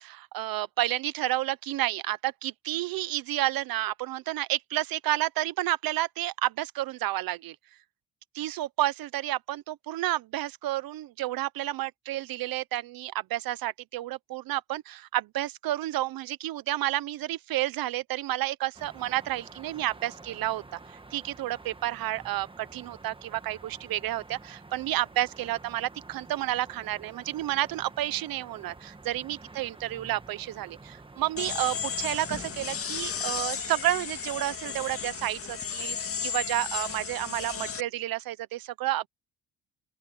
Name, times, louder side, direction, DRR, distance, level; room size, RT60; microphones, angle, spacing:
voice 1, 0.0-7.6 8.3-20.6 20.9-39.1, right 15 dB, 70° right, 0.8 m, -30 dB
sound 1, 18.7-32.8, right 3 dB, 15° right, 1.7 m, -49 dB
sound 2, 31.4-37.8, left 7 dB, 40° left, 2.1 m, -34 dB
open air
cardioid pair, 115°, 37 cm